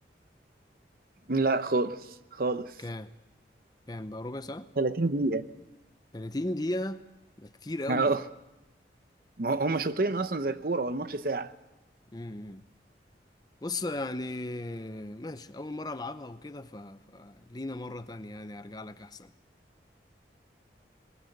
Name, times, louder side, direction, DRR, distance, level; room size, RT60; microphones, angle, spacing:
voice 1, 1.3-2.0 2.3-2.7 4.8-5.4 7.9-8.2 9.4-11.5, right 3 dB, 55° right, 0.8 m, -27 dB
voice 2, 2.8-3.1 3.9-4.7 6.1-7.0 7.4-8.1 12.1-12.6 13.6-19.3, left 1 dB, 25° left, 0.7 m, -36 dB
21.5 x 18.5 x 8.0 m
head